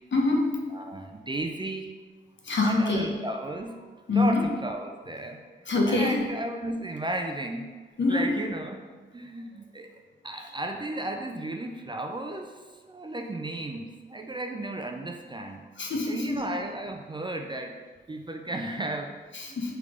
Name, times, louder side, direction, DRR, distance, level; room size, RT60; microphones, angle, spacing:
voice 1, 0.1-0.8 2.4-3.1 4.1-4.4 5.7-6.2 8.0-8.4 15.8-16.4 19.3-19.7, left 3 dB, 60° left, 0 dB, 0.8 m, -25 dB
voice 2, 0.7-2.0 2.6-7.7 8.1-8.9 9.1-9.9 10.2-15.7 16.1-17.8 18.1-19.1 19.5-19.6, right 1 dB, 20° right, 4 dB, 0.4 m, -34 dB
3.5 x 3.2 x 3.6 m, 1.4 s
cardioid pair, 50°, 21 cm